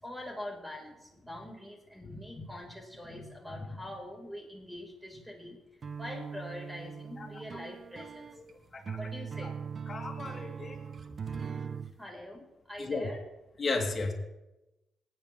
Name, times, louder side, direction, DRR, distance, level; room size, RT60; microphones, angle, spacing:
voice 1, 0.0-8.3 8.9-9.5 11.3-11.4 12.0-13.2, left 1 dB, 5° right, 0 dB, 4.7 m, -44 dB
sound 1, 5.8-11.9, right 6 dB, 50° right, 0.8 m, -40 dB
voice 2, 9.9-10.8 12.8-13.1 13.6-14.1, left 3 dB, 40° left, -1 dB, 3.4 m, -33 dB
18.5 x 9.4 x 3.5 m, 0.98 s
hypercardioid pair, 50°, 0 cm